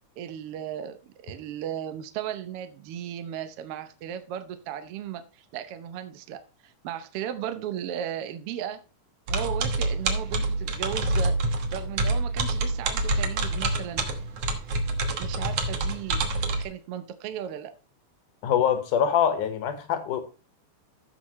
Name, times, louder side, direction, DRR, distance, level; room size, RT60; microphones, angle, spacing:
voice 1, 0.2-8.8 9.3-14.1 15.2-16.2 16.6-17.7, right 10 dB, 80° right, 1.3 m, -36 dB
sound 1, 9.3-16.6, right 2 dB, 55° right, 2.0 m, -27 dB
voice 2, 18.4-20.2, left 8 dB, 80° left, 2.7 m, -24 dB
14.5 x 6.1 x 3.1 m
omnidirectional pair, 3.7 m